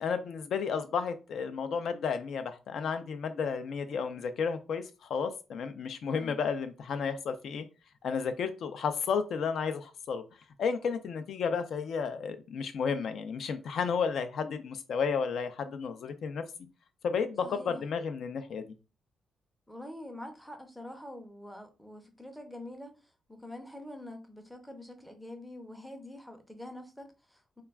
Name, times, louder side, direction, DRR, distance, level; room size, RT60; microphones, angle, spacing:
voice 1, 0.0-7.6 8.0-10.2 10.6-16.4 17.0-18.7, left 6 dB, 65° left, 0.3 m, -32 dB
voice 2, 6.1-6.4 17.4-17.8 19.7-23.0 23.3-27.6, left 1 dB, ahead, 0.5 m, -45 dB
2.3 x 2.2 x 3.4 m
cardioid pair, 145°, 0 cm